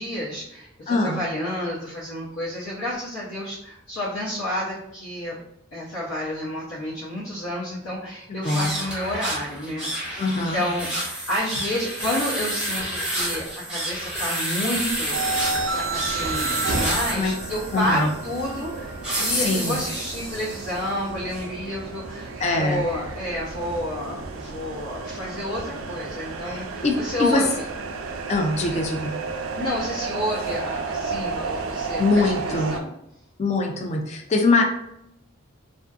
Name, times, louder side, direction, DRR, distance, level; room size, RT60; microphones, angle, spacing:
voice 1, 0.0-5.4 5.7-27.6 29.6-32.9, left 1 dB, 80° left, -8 dB, 0.7 m, -30 dB
voice 2, 0.9-1.2 8.3-8.7 10.2-10.6 17.1-17.3 17.7-18.1 19.3-19.8 22.4-22.9 26.5-27.4 28.3-29.1 32.0-32.8 33.4-34.6, left 3 dB, 35° left, 3 dB, 0.3 m, -23 dB
sound 1, 8.4-20.9, right 1 dB, 5° right, 0.6 m, -30 dB
sound 2, 15.1-32.8, right 3 dB, 85° right, 0.3 m, -32 dB
2.5 x 2.5 x 2.3 m, 0.79 s
head